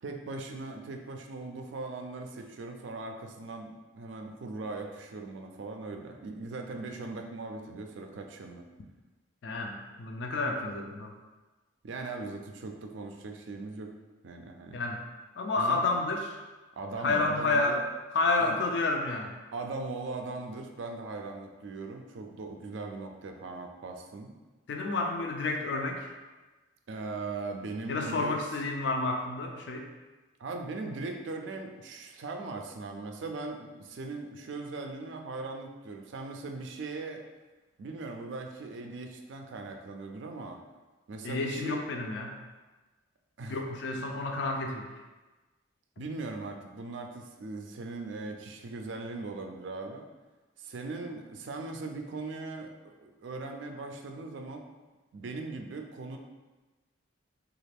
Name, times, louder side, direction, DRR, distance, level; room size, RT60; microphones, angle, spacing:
voice 1, 0.0-8.7 11.8-13.9 14.2-14.8 15.6-15.8 16.8-17.8 18.4-18.6 19.5-24.3 26.9-28.6 30.4-37.2 37.8-40.6 41.1-41.9 43.4-43.6 46.0-50.1 50.6-54.7 55.1-56.2, right 3 dB, 70° right, 3 dB, 0.4 m, -39 dB
voice 2, 9.4-11.1 14.7-15.0 15.4-16.4 16.9-17.8 18.1-19.3 24.7-26.1 27.9-29.9 41.2-42.3 43.5-44.9 46.0-46.1, left 3 dB, 60° left, 2 dB, 0.4 m, -30 dB
3.2 x 2.4 x 3.3 m, 1.2 s
head